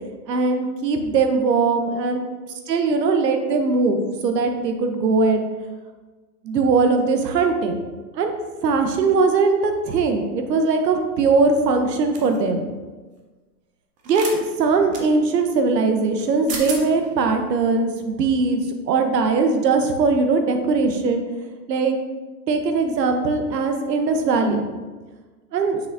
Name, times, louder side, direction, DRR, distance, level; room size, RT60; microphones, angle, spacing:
voice 1, 0.3-2.2 2.7-5.5 6.4-7.8 8.1-8.3 8.6-12.6 14.1-18.6 18.9-21.2 21.7-22.0 22.5-24.6 25.5-25.8, right 4 dB, 75° right, 5 dB, 1.2 m, -20 dB
sound 1, 12.1-12.4 14.0-14.4 14.9-15.0 16.2-16.3 16.5-16.8, right 4 dB, 15° right, 0.6 m, -31 dB
7.4 x 5.9 x 2.7 m, 1.3 s
hypercardioid pair, 130°, 50 cm